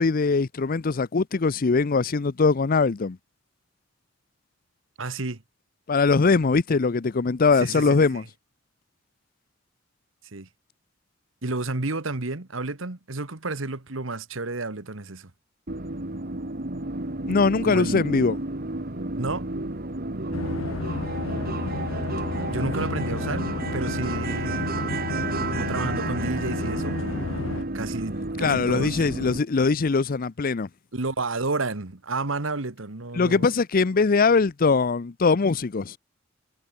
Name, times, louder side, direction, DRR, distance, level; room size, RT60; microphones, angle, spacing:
voice 1, 0.0-3.2 5.9-8.2 17.3-18.4 28.4-30.7 33.2-36.0, left 4 dB, 45° left, 0.6 m, -21 dB
voice 2, 5.0-5.4 7.6-8.1 10.3-10.5 11.4-15.3 17.6-18.0 19.2-19.5 22.5-23.5 23.7-24.7 25.5-27.0 27.7-29.0 30.9-33.5, right 3 dB, 75° right, 1.6 m, -31 dB
sound 1, 15.7-29.4, right 2 dB, 50° right, 2.1 m, -31 dB
sound 2, 20.3-27.6, left 4 dB, 80° left, 0.7 m, -32 dB
head